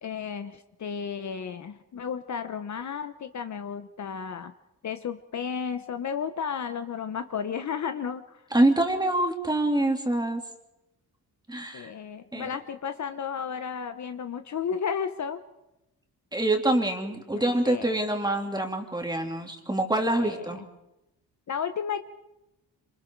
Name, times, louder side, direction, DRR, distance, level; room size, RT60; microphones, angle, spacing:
voice 1, 0.0-4.5 4.8-8.4 11.7-15.4 17.3-18.1 20.2-20.5 21.5-22.0, left 7 dB, 45° left, 9 dB, 1.0 m, -33 dB
voice 2, 8.5-10.4 11.5-11.9 12.3-12.5 16.3-20.6, right 1 dB, 10° right, 3 dB, 2.9 m, -25 dB
27.0 x 27.0 x 4.7 m, 0.90 s
cardioid pair, 135°, 39 cm